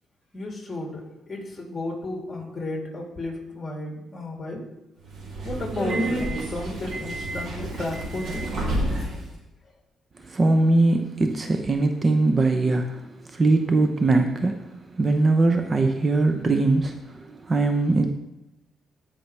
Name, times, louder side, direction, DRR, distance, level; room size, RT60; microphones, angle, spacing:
voice 1, 0.3-4.6 5.4-8.6, left 2 dB, 25° left, 0 dB, 3.2 m, -33 dB
Subway metro underground, 5.0-9.3, right 1 dB, 65° right, 3.0 m, -29 dB
voice 2, 10.2-18.1, right 2 dB, 30° right, 6 dB, 0.7 m, -21 dB
16.5 x 5.7 x 3.4 m, 0.96 s
cardioid pair, 90°, 0 cm